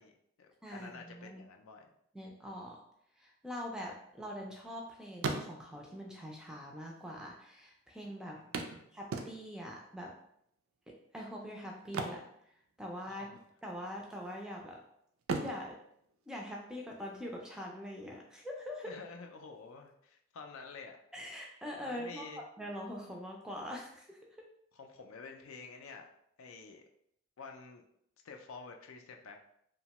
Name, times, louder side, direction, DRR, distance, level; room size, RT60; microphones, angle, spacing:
voice 1, 0.0-1.9 8.3-8.9 13.1-13.4 18.8-21.0 21.8-22.4 24.7-26.0 26.4-26.8 27.4-27.8 28.2-29.4, left 4 dB, 85° left, 3 dB, 0.4 m, -49 dB
voice 2, 0.6-1.4 2.1-2.8 3.2-8.4 8.9-10.1 10.9-12.3 12.8-13.3 13.6-14.8 15.4-15.8 16.3-18.9 21.1-24.3, equal, 5° right, -1 dB, 0.3 m, -43 dB
sound 1, 3.8-4.8 5.1-6.0 6.9-7.0 7.2-7.3 8.5-9.7 11.8-13.1 13.3-13.6 14.1-14.7 15.2-17.0 18.9-19.0 19.5-19.6, right 4 dB, 80° right, 0.4 m, -39 dB
2.8 x 2.2 x 2.9 m, 0.72 s
head